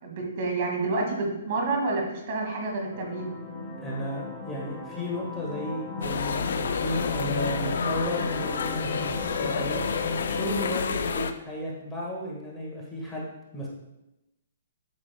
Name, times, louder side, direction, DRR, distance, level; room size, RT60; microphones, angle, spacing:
voice 1, 0.0-3.3, right 3 dB, 50° right, 1 dB, 1.8 m, -29 dB
sound 1, 2.9-10.7, left 3 dB, 25° left, 0.9 m, -35 dB
voice 2, 3.8-9.8 10.3-13.3 13.5-13.7, equal, 10° left, -5 dB, 1.5 m, -34 dB
sound 2, 6.0-11.3, left 6 dB, 70° left, 0.5 m, -30 dB
8.6 x 6.1 x 2.2 m, 0.93 s
hypercardioid pair, 145°, 0 cm